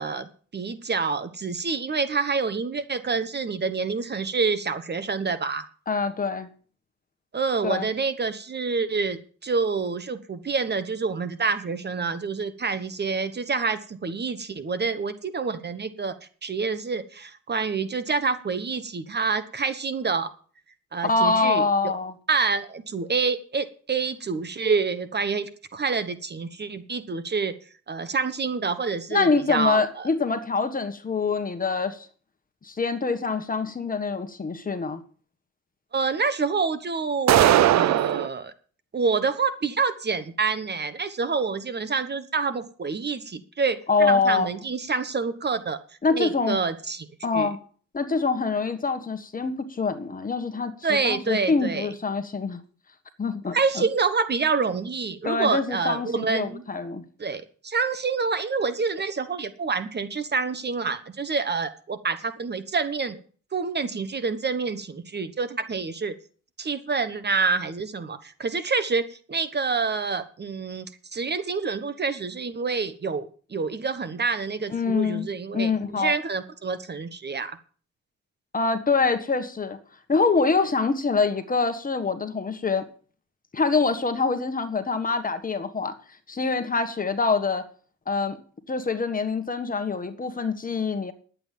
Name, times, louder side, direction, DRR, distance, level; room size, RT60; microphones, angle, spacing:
voice 1, 0.0-5.6 7.3-16.1 16.4-20.3 20.9-21.9 22.3-27.5 27.9-30.1 35.9-38.5 38.9-45.8 46.1-47.1 47.3-47.5 50.8-51.9 53.5-56.6 57.2-63.2 63.5-66.1 66.6-70.9 71.1-77.6, right 4 dB, 35° right, 12 dB, 1.3 m, -27 dB
voice 2, 5.9-6.5 7.6-7.9 21.0-22.1 29.1-32.1 32.6-35.0 43.9-44.5 46.0-46.6 47.2-47.6 47.9-50.7 51.0-52.6 53.2-53.8 55.2-57.0 74.7-75.3 75.5-76.1 78.5-79.8 80.1-82.8 83.5-85.9 86.3-87.6 88.1-88.4 88.7-91.1, left 4 dB, 30° left, 8 dB, 1.5 m, -25 dB
sound 1, 37.3-38.3, right 13 dB, 65° right, 0.6 m, -18 dB
11.0 x 8.1 x 7.5 m, 0.43 s
cardioid pair, 90°, 30 cm